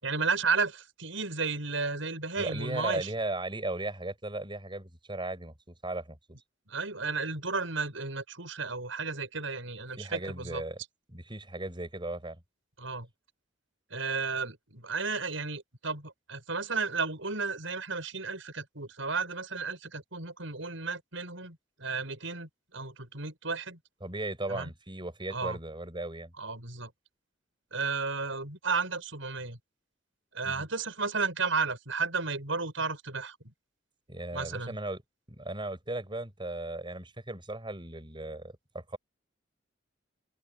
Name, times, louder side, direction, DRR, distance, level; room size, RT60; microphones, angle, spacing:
voice 1, 0.0-3.1 6.7-10.6 12.8-13.1 13.9-23.8 24.5-24.7 25.3-25.6 26.4-26.9 27.7-29.6 30.3-33.5 34.3-34.7, right 4 dB, 80° right, 7.8 m, -33 dB
voice 2, 2.4-5.5 5.8-6.2 10.0-10.8 11.1-12.4 24.0-26.3 30.4-30.7 34.1-35.0 35.3-39.0, right 2 dB, 25° right, 6.2 m, -36 dB
open air
head